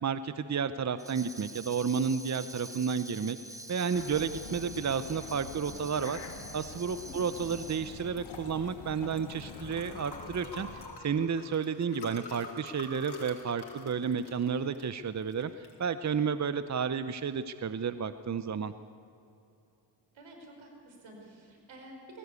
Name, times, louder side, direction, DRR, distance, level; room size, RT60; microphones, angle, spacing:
voice 1, 0.0-3.4 3.7-6.2 6.5-18.7, right 6 dB, 40° right, 12 dB, 0.8 m, -32 dB
Tambourine, 1.0-8.1, right 1 dB, 5° right, 1.1 m, -46 dB
sound 1, 3.9-10.9, left 5 dB, 80° left, 1.7 m, -46 dB
Liquid, 7.5-17.6, left 3 dB, 60° left, 4.5 m, -48 dB
voice 2, 20.1-22.2, right 1 dB, 80° right, 2 dB, 5.0 m, -50 dB
21.0 x 17.0 x 8.3 m, 2.7 s
cardioid pair, 65°, 45 cm